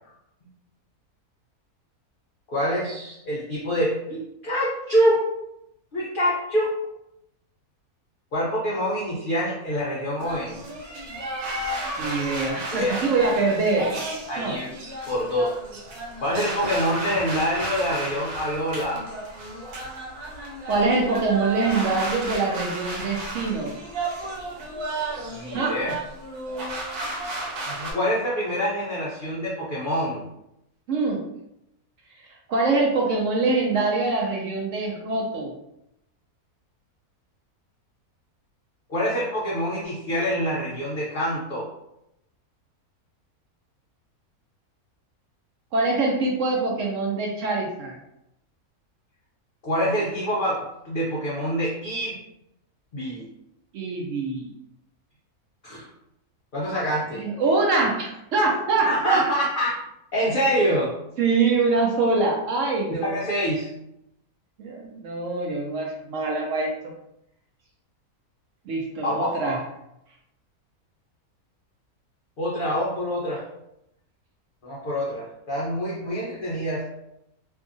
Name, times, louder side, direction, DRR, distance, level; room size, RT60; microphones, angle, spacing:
voice 1, 2.5-5.3 5.9-6.7 8.3-10.6 12.7-13.1 14.3-14.8 15.1-15.5 16.2-19.1 25.3-26.0 27.9-30.2 38.9-41.7 49.6-52.2 52.9-53.2 55.6-55.9 56.5-57.3 58.8-59.7 60.1-60.9 62.9-63.7 69.0-69.6 72.4-73.4 74.6-76.9, equal, 70° left, -5 dB, 0.5 m, -26 dB
sound 1, 10.2-27.9, right 2 dB, 85° right, 1.2 m, -33 dB
voice 2, 12.0-13.9 14.4-14.6 20.7-23.7 25.5-25.9 30.9-31.2 32.5-35.5 45.7-47.9 53.7-54.5 57.2-59.3 61.2-63.2 64.6-66.7 68.7-69.6, right 3 dB, 65° right, -1 dB, 0.8 m, -24 dB
2.7 x 2.4 x 2.5 m, 0.83 s
omnidirectional pair, 1.6 m